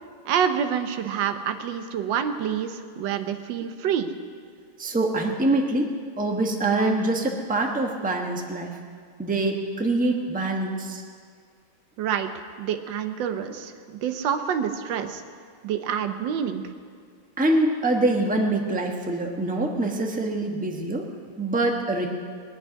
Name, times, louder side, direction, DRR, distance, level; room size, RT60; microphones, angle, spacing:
voice 1, 0.3-4.1 12.0-12.3 12.6-15.2 15.6-16.6, right 8 dB, 65° right, 8 dB, 1.5 m, -27 dB
voice 2, 4.8-8.8 9.2-11.0 17.4-21.1 21.4-22.1, right 2 dB, 5° right, 2 dB, 0.7 m, -25 dB
20.0 x 7.1 x 9.6 m, 2.1 s
omnidirectional pair, 2.4 m